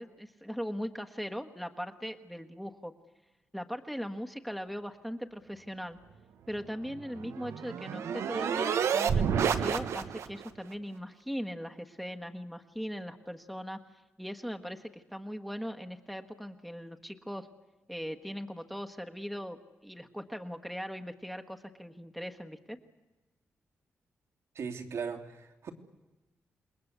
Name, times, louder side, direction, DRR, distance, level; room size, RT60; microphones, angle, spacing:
voice 1, 0.0-2.9 3.5-6.0 6.5-13.8 14.2-17.5 17.9-19.6 19.8-22.8, equal, ahead, 5 dB, 1.5 m, -39 dB
sound 1, 6.9-10.5, right 7 dB, 90° right, 1.4 m, -30 dB
voice 2, 24.5-25.7, right 6 dB, 70° right, 3 dB, 3.0 m, -38 dB
28.0 x 21.5 x 8.2 m, 1.1 s
wide cardioid pair, 125°, 5 cm